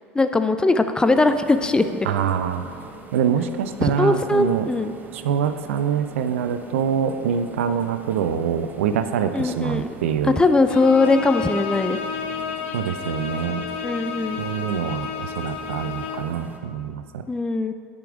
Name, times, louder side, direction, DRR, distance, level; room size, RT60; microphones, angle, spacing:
voice 1, 0.1-2.0 3.8-5.0 9.3-9.9 10.2-12.0 13.8-14.4 17.3-17.7, left 3 dB, 10° left, 9 dB, 0.3 m, -20 dB
sound 1, 1.0-16.6, right 3 dB, 25° right, 0.7 m, -42 dB
voice 2, 2.1-2.6 3.1-4.7 5.1-10.4 12.7-13.6 14.4-17.2, right 8 dB, 70° right, 10 dB, 0.4 m, -25 dB
Bowed string instrument, 10.7-16.4, left 6 dB, 65° left, 0.6 m, -31 dB
8.8 x 5.2 x 3.6 m, 2.3 s
hypercardioid pair, 80°, 7 cm